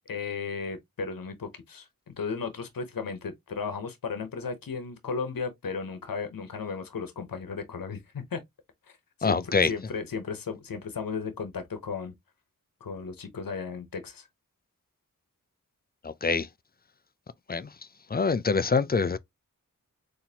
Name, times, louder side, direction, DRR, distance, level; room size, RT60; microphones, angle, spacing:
voice 1, 0.1-8.4 8.9-12.1 12.8-14.3, left 5 dB, 85° left, 0.9 m, -35 dB
voice 2, 9.2-9.7 16.0-16.5 17.5-17.7 18.1-19.2, left 4 dB, 30° left, 0.3 m, -25 dB
4.2 x 2.8 x 2.8 m
wide cardioid pair, 85°, 34 cm